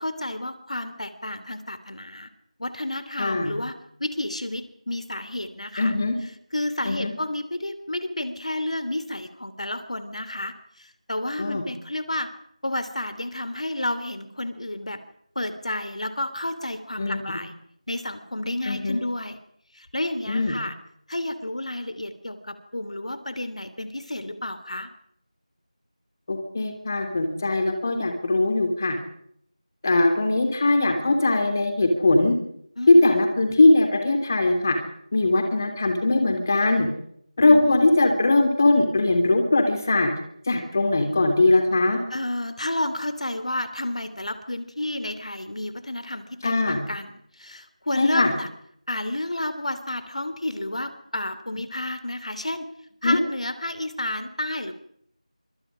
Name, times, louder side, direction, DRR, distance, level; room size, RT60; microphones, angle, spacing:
voice 1, 0.0-2.3 2.6-5.9 6.5-12.3 12.6-15.0 15.3-17.5 17.9-19.4 19.7-20.8 21.1-24.9 32.8-33.2 37.4-37.9 42.1-47.1 47.4-48.5 48.9-52.7 53.0-54.7, left 1 dB, 65° left, 12 dB, 2.9 m, -31 dB
voice 2, 3.2-3.5 5.8-6.1 6.9-7.1 11.4-11.6 17.0-17.4 18.7-19.0 20.3-20.5 26.3-29.0 29.8-32.3 32.9-34.8 35.1-36.9 37.4-40.1 40.5-42.0 46.4-46.8 48.0-48.3 53.0-53.2, left 2 dB, 25° left, 5 dB, 3.2 m, -20 dB
25.5 x 25.5 x 5.0 m, 0.69 s
figure-of-eight pair, 175°, 4 cm